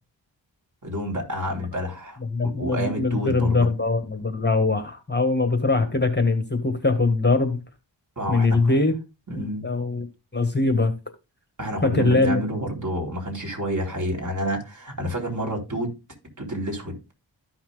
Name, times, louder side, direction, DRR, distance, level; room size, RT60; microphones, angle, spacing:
voice 1, 0.8-3.7 8.2-8.8 9.3-9.6 11.6-15.9 16.4-16.9, equal, 40° right, 3.8 m, -29 dB
voice 2, 2.3-7.6 8.3-8.9 9.3-10.1 10.3-10.9 11.8-12.4, left 3 dB, 25° left, 1.6 m, -22 dB
14.0 x 5.9 x 2.4 m
wide cardioid pair, 85°, 45 cm